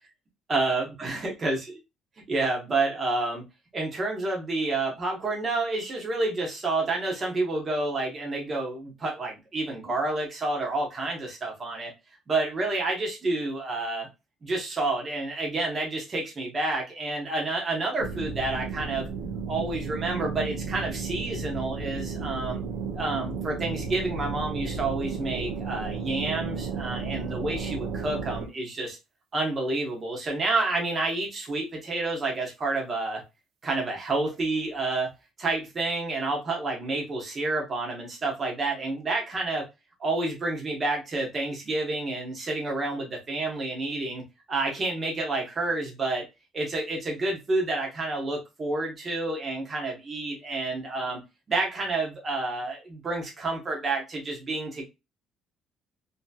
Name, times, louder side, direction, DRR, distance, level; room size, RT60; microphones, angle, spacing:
voice 1, 0.5-1.7 2.3-3.4 3.7-11.9 12.3-14.1 14.4-19.1 19.5-22.6 22.9-29.0 29.3-33.2 33.6-35.1 35.4-39.7 40.0-44.2 44.5-46.3 46.5-51.2 51.5-54.8, right 2 dB, 25° right, 0.9 m, -29 dB
sound 1, 18.0-28.5, right 5 dB, 85° right, 0.6 m, -33 dB
2.8 x 2.7 x 2.3 m
cardioid pair, 175°, 0 cm